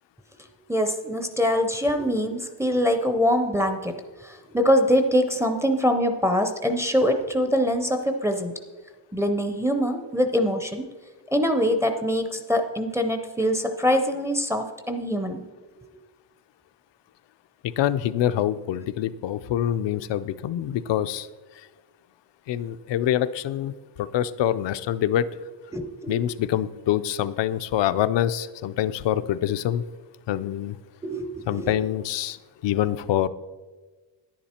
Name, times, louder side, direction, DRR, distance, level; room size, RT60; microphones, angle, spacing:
voice 1, 0.7-3.9 4.2-8.5 9.1-10.8 11.3-15.4 25.7-26.2 31.0-31.7, equal, 5° right, 5 dB, 0.5 m, -24 dB
voice 2, 17.6-21.3 22.5-23.7 24.0-25.3 26.1-29.8 30.3-30.8 31.5-32.4 32.6-33.3, left 11 dB, 75° left, 12 dB, 0.6 m, -25 dB
10.5 x 10.5 x 4.3 m, 1.3 s
wide cardioid pair, 175°, 43 cm